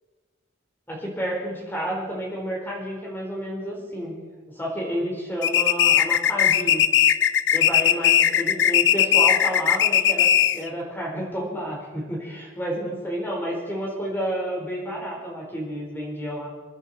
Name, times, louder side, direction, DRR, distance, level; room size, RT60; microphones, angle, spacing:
voice 1, 0.9-4.2 4.5-6.8 7.5-16.5, equal, 10° left, -3 dB, 4.3 m, -30 dB
sound 1, 5.4-10.7, left 10 dB, 60° left, 0.5 m, -19 dB
27.5 x 10.5 x 4.3 m, 1.4 s
head